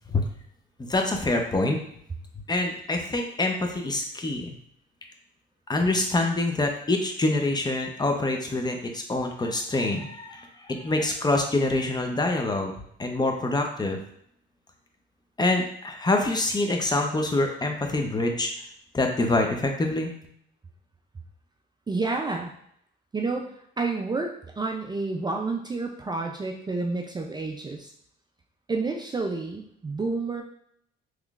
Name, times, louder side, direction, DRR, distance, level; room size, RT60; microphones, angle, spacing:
voice 1, 0.8-1.8 2.5-4.5 5.7-12.7 13.0-14.0 15.4-18.5 18.9-20.1, left 2 dB, 20° left, 3 dB, 0.6 m, -25 dB
voice 2, 21.9-22.5 23.1-23.5 23.8-27.9 28.7-30.4, right 3 dB, 20° right, 1 dB, 0.4 m, -29 dB
3.7 x 3.1 x 2.3 m, 0.70 s
cardioid pair, 90°, 20 cm